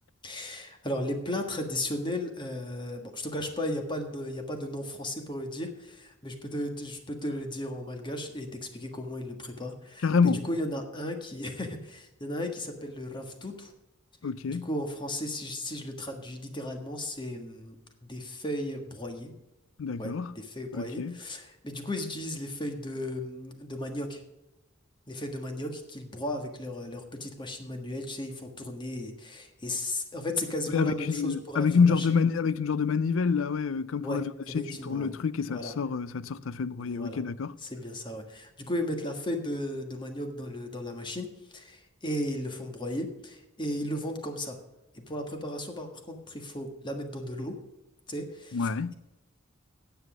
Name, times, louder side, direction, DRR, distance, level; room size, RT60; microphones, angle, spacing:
voice 1, 0.2-10.1 10.4-13.7 14.5-17.7 18.0-19.3 20.0-24.2 25.1-32.1 34.0-34.2 34.5-35.1 35.5-35.7 36.8-37.2 37.6-44.6 44.9-47.6 48.1-48.9, left 1 dB, 25° left, 1.5 m, -35 dB
voice 2, 10.0-10.5 14.2-14.7 19.8-20.4 20.7-21.2 30.7-37.6 48.5-48.9, left 5 dB, 80° left, 0.5 m, -27 dB
9.5 x 8.0 x 6.1 m
head